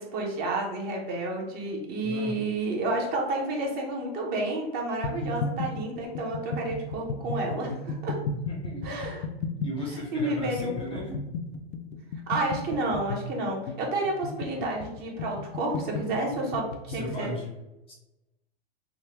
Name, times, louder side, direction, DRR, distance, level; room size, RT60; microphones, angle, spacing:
voice 1, 0.0-8.2 8.8-9.2 9.9-11.0 12.3-17.3, right 2 dB, 30° right, 0 dB, 0.7 m, -30 dB
voice 2, 2.0-2.5 8.3-9.0 9.6-11.2 16.9-17.5 17.9-18.0, left 1 dB, 15° left, -3 dB, 0.6 m, -37 dB
sound 1, 5.0-17.3, left 3 dB, 75° left, 0.5 m, -34 dB
3.6 x 2.1 x 2.9 m, 0.98 s
hypercardioid pair, 135°, 31 cm